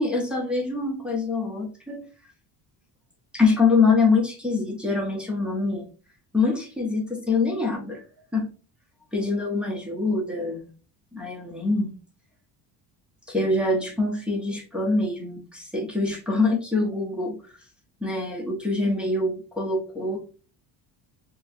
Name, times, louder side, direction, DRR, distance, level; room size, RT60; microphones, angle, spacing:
voice 1, 0.0-2.0 3.3-5.9 6.3-8.0 8.3-8.5 9.1-10.6 11.1-12.0 13.3-17.4 18.0-20.2, left 3 dB, ahead, -3 dB, 0.8 m, -24 dB
6.4 x 2.3 x 2.5 m, 0.37 s
cardioid pair, 160°, 43 cm